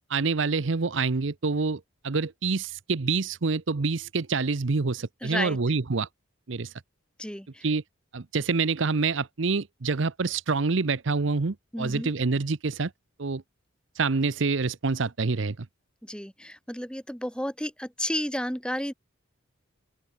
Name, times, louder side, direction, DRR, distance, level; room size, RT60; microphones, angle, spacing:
voice 1, 0.1-6.1 6.5-6.7 7.6-7.8 8.1-12.9 13.2-13.4 14.0-15.7, right 4 dB, 75° right, 0.8 m, -27 dB
voice 2, 5.2-5.6 7.2-7.7 11.7-12.1 16.0-18.9, equal, 5° left, 6.0 m, -32 dB
head